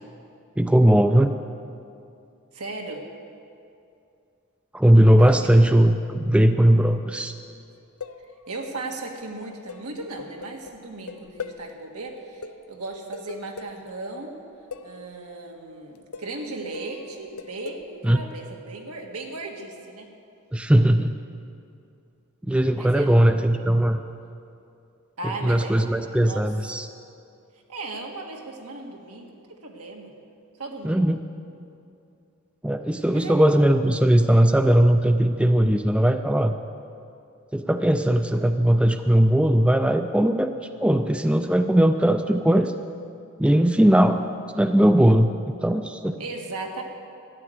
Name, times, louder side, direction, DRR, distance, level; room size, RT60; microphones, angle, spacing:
voice 1, 0.6-1.4 4.7-7.3 18.0-18.2 20.5-21.2 22.5-24.0 25.2-26.9 30.8-31.2 32.6-36.5 37.5-40.5 40.8-42.7 43.4-44.2 44.6-46.1, right 1 dB, 5° right, 8 dB, 0.3 m, -19 dB
voice 2, 2.5-3.1 5.2-5.7 8.5-14.4 14.8-20.1 22.7-23.4 25.2-26.4 27.7-30.1 30.6-31.1 33.1-33.7 46.2-46.8, right 2 dB, 90° right, 1 dB, 1.8 m, -36 dB
sound 1, 7.7-8.7 9.7-11.7 12.1-12.2 12.4-13.9 14.7-15.1 15.9-16.5 16.7-18.0, left 5 dB, 80° left, 0.6 m, -39 dB
13.0 x 10.5 x 7.9 m, 2.5 s
head